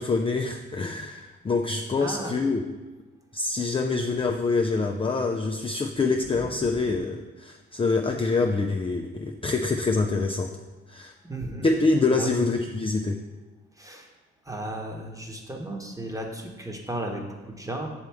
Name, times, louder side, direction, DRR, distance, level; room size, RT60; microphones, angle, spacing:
voice 1, 0.0-2.7 3.3-10.5 10.9-11.1 11.6-13.2, left 3 dB, 20° left, 3 dB, 0.4 m, -25 dB
voice 2, 2.0-2.4 11.3-11.7 12.1-12.4 13.8-14.1 14.5-17.9, right 1 dB, 10° right, 1 dB, 1.1 m, -34 dB
6.7 x 4.4 x 3.5 m, 1.2 s
supercardioid pair, 55°, 30 cm